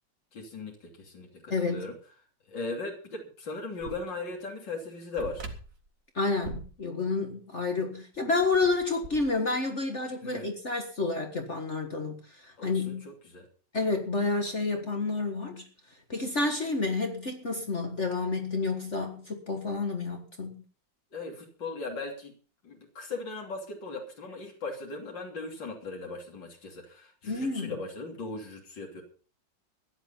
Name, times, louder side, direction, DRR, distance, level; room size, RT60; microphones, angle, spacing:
voice 1, 0.3-1.9 2.5-5.5 10.2-10.5 12.6-13.5 21.1-22.3 22.6-29.0, left 3 dB, 80° left, 1 dB, 3.6 m, -38 dB
voice 2, 1.5-1.9 6.2-13.0 13.7-15.6 16.1-20.6 27.3-27.8, left 3 dB, 40° left, 4 dB, 1.9 m, -30 dB
sound 1, 3.8-4.0 4.3-4.4 5.2-5.9 6.4-6.7 8.1-9.4, right 3 dB, 45° right, 2.5 m, -41 dB
16.0 x 11.0 x 5.5 m, 0.39 s
omnidirectional pair, 2.0 m